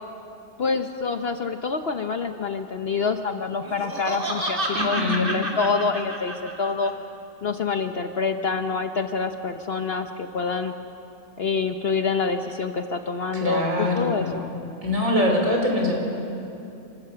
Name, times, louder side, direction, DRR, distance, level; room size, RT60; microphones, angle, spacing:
voice 1, 0.6-6.9 7.4-10.7 11.4-14.5, left 4 dB, 50° left, 7 dB, 0.9 m, -26 dB
Laughter, 3.6-6.9, right 1 dB, 35° right, 2.3 m, -29 dB
voice 2, 4.7-5.3 13.3-14.5 14.8-15.9, left 1 dB, 65° right, 1 dB, 3.9 m, -23 dB
27.0 x 16.5 x 6.8 m, 2.9 s
omnidirectional pair, 1.5 m